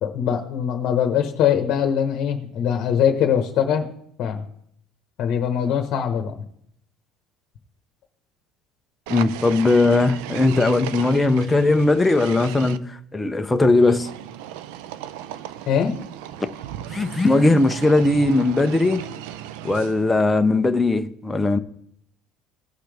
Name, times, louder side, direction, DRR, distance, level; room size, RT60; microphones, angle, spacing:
voice 1, 0.0-3.8 4.2-4.4 5.2-6.4 15.7-16.0, left 8 dB, 45° left, 1.2 m, -22 dB
voice 2, 9.1-14.1 16.4-16.5 16.9-19.0 19.6-21.6, left 2 dB, 10° left, 0.6 m, -19 dB
sound 1, 9.1-12.8 13.8-20.2, right 11 dB, 90° right, 0.5 m, -36 dB
17.5 x 5.8 x 3.4 m
cardioid pair, 155°, 0 cm